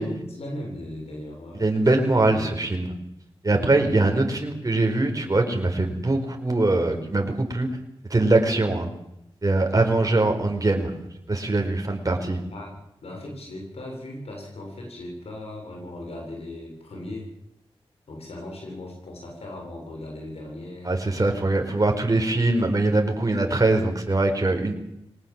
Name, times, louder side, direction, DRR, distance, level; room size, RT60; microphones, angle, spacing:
voice 1, 0.0-1.7 2.1-2.5 3.5-3.8 9.8-9.9 12.5-12.7 13.0-17.3 18.1-21.2, left 1 dB, 85° left, 0 dB, 7.7 m, -38 dB
voice 2, 1.5-2.9 3.4-7.7 8.1-8.9 9.4-10.9 11.3-12.4 20.8-24.7, right 2 dB, 35° right, 3 dB, 4.7 m, -22 dB
22.5 x 19.0 x 7.5 m, 0.80 s
cardioid pair, 55°, 10 cm